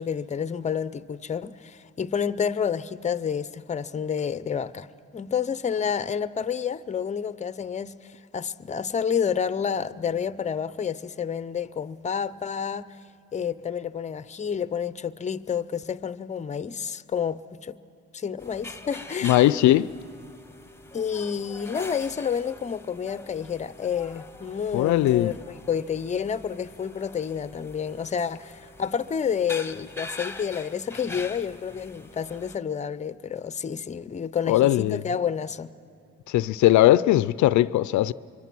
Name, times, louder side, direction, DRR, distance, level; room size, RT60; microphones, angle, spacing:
voice 1, 0.0-4.9 5.1-13.0 13.3-17.8 18.1-19.4 20.9-35.7, left 7 dB, 25° left, 0.5 m, -29 dB
sound 1, 18.4-32.6, left 2 dB, 10° left, 1.0 m, -43 dB
voice 2, 19.2-19.9 24.7-25.3 34.5-35.0 36.3-38.1, left 14 dB, 70° left, 0.4 m, -19 dB
25.0 x 23.0 x 6.1 m
cardioid pair, 90°, 30 cm